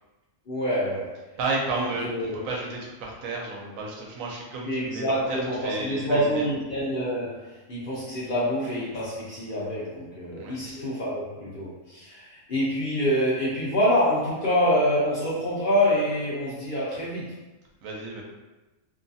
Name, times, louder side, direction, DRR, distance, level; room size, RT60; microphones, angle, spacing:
voice 1, 0.5-1.1 1.8-2.3 4.6-7.4 7.7-17.2, equal, 55° left, -7 dB, 0.6 m, -26 dB
voice 2, 1.4-6.5 10.4-10.5 17.8-18.2, right 3 dB, 85° right, -2 dB, 1.0 m, -32 dB
2.6 x 2.3 x 2.6 m, 1.1 s
omnidirectional pair, 1.4 m